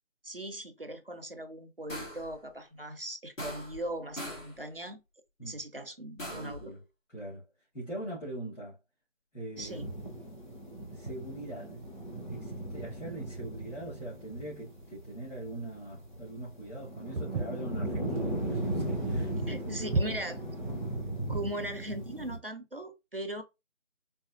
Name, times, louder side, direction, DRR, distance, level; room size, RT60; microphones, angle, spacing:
voice 1, 0.2-5.0 5.4-6.6 9.6-9.9 19.5-20.4 21.3-23.4, right 1 dB, 50° right, 0.4 m, -39 dB
sound 1, 1.9-2.3 3.4-3.9 4.2-4.6 6.2-6.6, left 1 dB, 85° left, 2.0 m, -40 dB
voice 2, 6.3-6.8 7.1-7.4 7.7-8.8 9.3-9.8 10.9-20.4, right 1 dB, 70° left, 2.1 m, -42 dB
Clean Ocean Waves Foley, 9.6-22.4, right 1 dB, 40° left, 0.7 m, -37 dB
Walk footsteps, 17.1-21.6, right 3 dB, 85° right, 0.6 m, -34 dB
4.0 x 2.3 x 2.5 m
figure-of-eight pair, 180°, 38 cm